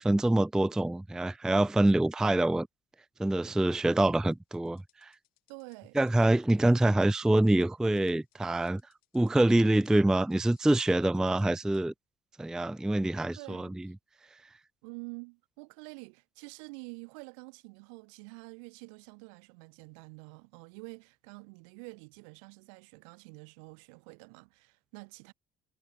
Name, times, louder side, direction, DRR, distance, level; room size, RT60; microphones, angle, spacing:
voice 1, 0.0-2.7 3.2-5.1 6.0-8.8 9.1-11.9 12.4-13.7, right 1 dB, 5° right, 0.3 m, -25 dB
sound 1, 4.3-11.9, left 19 dB, 65° left, 6.3 m, -71 dB
voice 2, 5.5-6.0 8.6-8.7 13.4-13.9 14.8-25.3, right 35 dB, 70° right, 6.2 m, -48 dB
hypercardioid pair, 55°, 16 cm